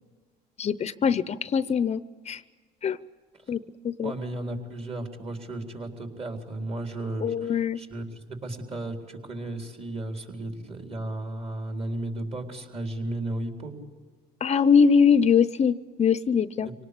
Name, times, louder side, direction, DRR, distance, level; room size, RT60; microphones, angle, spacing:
voice 1, 0.6-2.4 2.8-3.0 3.5-3.6 3.8-4.1 7.2-7.8 14.4-16.7, left 6 dB, 40° left, 15 dB, 0.7 m, -22 dB
voice 2, 4.0-13.7 16.6-16.7, right 1 dB, 35° right, 4 dB, 3.9 m, -34 dB
25.5 x 18.5 x 8.4 m, 1.5 s
cardioid pair, 100°, 18 cm